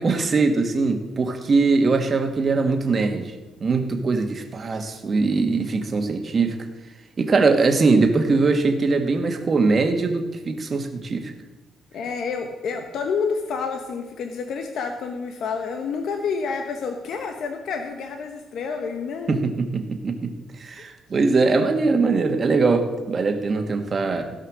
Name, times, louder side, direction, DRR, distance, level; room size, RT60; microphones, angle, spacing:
voice 1, 0.0-3.3 3.6-6.5 7.2-11.3 19.3-20.3 20.6-24.3, right 3 dB, 40° right, 5 dB, 1.7 m, -21 dB
voice 2, 11.9-19.5, left 5 dB, 70° left, 4 dB, 1.1 m, -29 dB
16.5 x 5.7 x 6.3 m, 1.1 s
cardioid pair, 90°, 0 cm